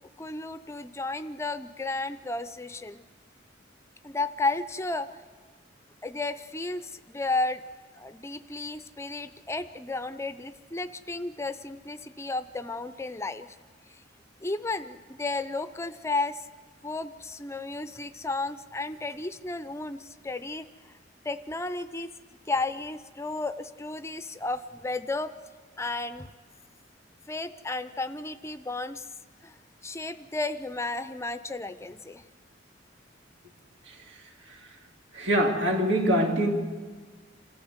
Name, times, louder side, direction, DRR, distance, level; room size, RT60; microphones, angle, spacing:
voice 1, 0.2-3.0 4.0-5.2 6.0-7.6 8.0-13.5 14.4-16.5 16.8-20.7 21.2-22.1 22.5-25.3 25.8-26.3 27.3-29.1 29.4-29.5 29.8-32.2, left 3 dB, 15° left, 0.5 m, -33 dB
voice 2, 35.1-36.5, right 1 dB, 75° right, 2.7 m, -24 dB
26.5 x 14.0 x 8.0 m
head